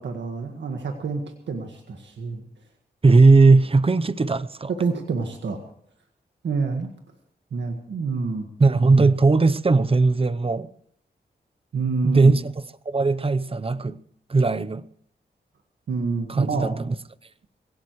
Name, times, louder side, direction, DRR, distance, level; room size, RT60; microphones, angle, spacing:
voice 1, 0.0-2.4 4.7-5.6 6.4-6.9 7.5-8.5 11.7-12.3 15.9-16.8, right 4 dB, 90° right, 1.7 m, -28 dB
voice 2, 3.0-4.7 8.6-10.7 12.0-12.5 12.9-14.0 14.3-14.8 16.3-16.9, right 3 dB, 30° right, 0.8 m, -18 dB
21.5 x 17.0 x 3.2 m
cardioid pair, 75°, 18 cm